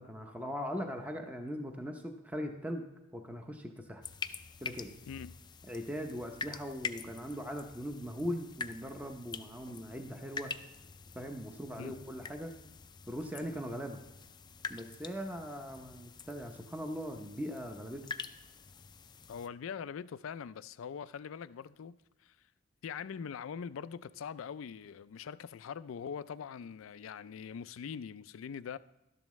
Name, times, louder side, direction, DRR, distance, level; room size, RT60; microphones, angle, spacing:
voice 1, 0.0-2.9 3.1-4.0 4.6-4.9 5.7-10.5 11.1-12.5 13.1-14.0 14.7-18.1, equal, 10° right, 0.7 m, -40 dB
sound 1, 4.0-19.5, left 5 dB, 20° left, 0.4 m, -46 dB
voice 2, 5.1-5.4 11.8-12.0 19.3-22.0 22.2-22.4 22.8-28.8, left 7 dB, 90° left, 0.4 m, -42 dB
12.5 x 10.5 x 3.1 m
head